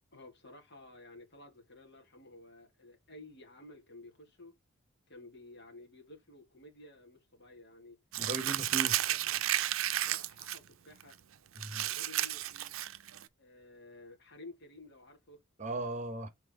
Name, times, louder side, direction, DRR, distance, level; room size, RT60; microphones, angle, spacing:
voice 1, 0.1-4.5 5.1-8.0 8.4-9.5 10.0-11.2 11.7-12.8 13.4-15.4, left 2 dB, 55° left, 2.6 m, -53 dB
Crumpling crinkling, 8.1-10.6 11.0-11.1 11.5-13.2, right 13 dB, 75° right, 0.5 m, -32 dB
voice 2, 8.2-8.9 11.5-11.8 15.6-16.3, right 2 dB, 35° right, 1.3 m, -37 dB
6.3 x 4.5 x 3.9 m
head